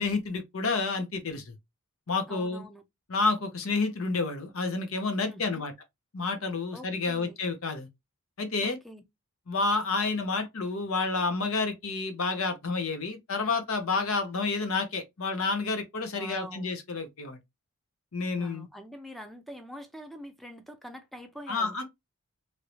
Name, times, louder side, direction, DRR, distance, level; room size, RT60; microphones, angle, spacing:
voice 1, 0.0-1.5 2.1-2.6 3.1-5.7 6.1-7.9 8.4-8.8 9.5-17.4 18.1-18.7 21.5-21.8, left 3 dB, 65° left, 0.7 m, -29 dB
voice 2, 2.3-2.8 5.3-5.7 6.7-7.4 8.6-9.0 16.1-16.7 18.4-21.8, equal, ahead, 0.5 m, -45 dB
3.1 x 2.6 x 3.0 m
head